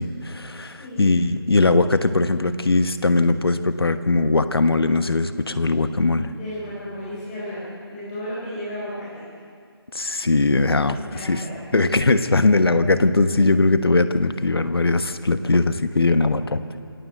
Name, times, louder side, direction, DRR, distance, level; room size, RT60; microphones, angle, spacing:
voice 1, 0.0-6.3 9.9-11.0 11.2-11.4 11.7-16.6, left 3 dB, 65° left, 10 dB, 1.3 m, -20 dB
voice 2, 0.6-1.1 6.2-9.2 10.9-11.5, left 1 dB, 20° left, -8 dB, 5.6 m, -34 dB
27.0 x 16.5 x 7.9 m, 2.2 s
figure-of-eight pair, 155°, 14 cm